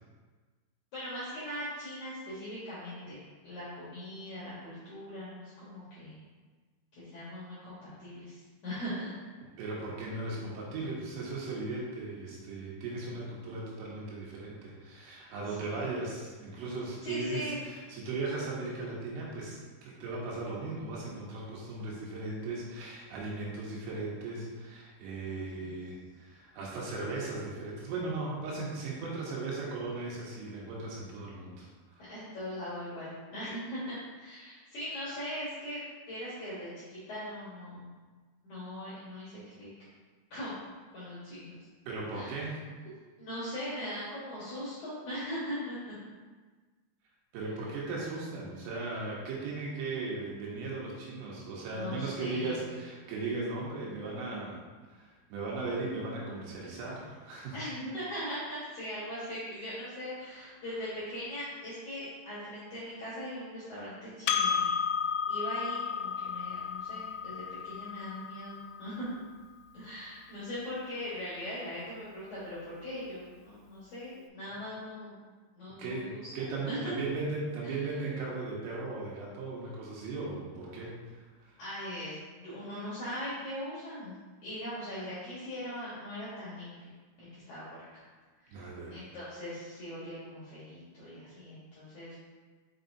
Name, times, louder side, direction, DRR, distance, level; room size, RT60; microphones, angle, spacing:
voice 1, 0.9-3.2 3.4-6.2 7.0-9.2 15.5-15.9 17.0-17.6 25.2-25.7 32.1-37.9 38.4-39.7 40.3-40.6 40.9-41.5 42.1-42.3 43.2-46.0 51.7-52.8 57.5-64.7 65.3-69.1 69.7-75.3 75.6-76.2 76.7-76.9 77.6-78.0 81.6-84.1 84.4-86.9 87.2-87.6 87.9-88.0 88.4-88.6 88.9-92.1, equal, 65° left, -10 dB, 1.9 m, -40 dB
voice 2, 9.6-32.1 41.9-42.6 47.3-54.6 54.9-57.6 60.3-60.5 75.8-81.6 88.5-89.0, right 3 dB, 80° right, -4 dB, 3.7 m, -37 dB
Percussion, 64.3-69.1, left 6 dB, 85° left, 2.9 m, -33 dB
6.6 x 5.6 x 2.7 m, 1.4 s
omnidirectional pair, 5.7 m